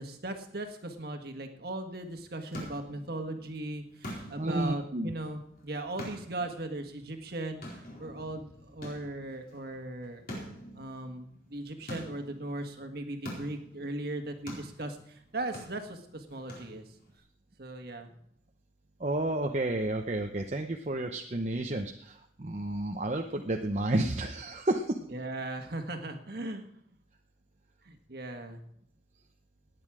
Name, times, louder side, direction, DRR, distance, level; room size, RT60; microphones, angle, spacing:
voice 1, 0.0-10.2 10.7-16.8 17.6-18.1 25.1-26.7 27.8-28.6, right 2 dB, 55° right, 5 dB, 1.6 m, -38 dB
sound 1, 2.0-17.2, equal, 50° left, 4.3 m, -47 dB
voice 2, 4.4-5.1 19.0-25.0, right 1 dB, 35° right, 3 dB, 0.7 m, -31 dB
18.0 x 9.6 x 4.9 m, 0.71 s
head